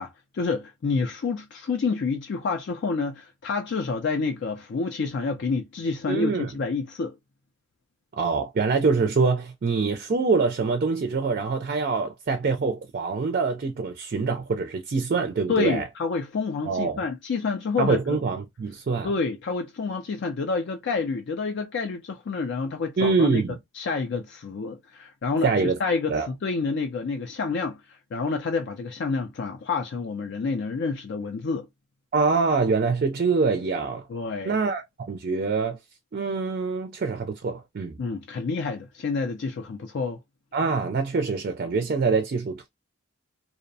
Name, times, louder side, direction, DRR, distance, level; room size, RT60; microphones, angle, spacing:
voice 1, 0.0-7.1 15.5-18.2 19.0-23.4 23.8-27.8 28.1-31.7 34.1-34.6 38.0-40.2, left 4 dB, 55° left, 0.4 m, -28 dB
voice 2, 6.1-6.5 8.2-15.9 16.7-17.0 17.8-19.1 23.0-23.6 25.4-25.8 26.1-26.3 32.1-34.1 34.4-35.8 36.1-38.0 40.5-42.7, right 4 dB, 45° right, 0.4 m, -25 dB
2.6 x 2.0 x 2.6 m
head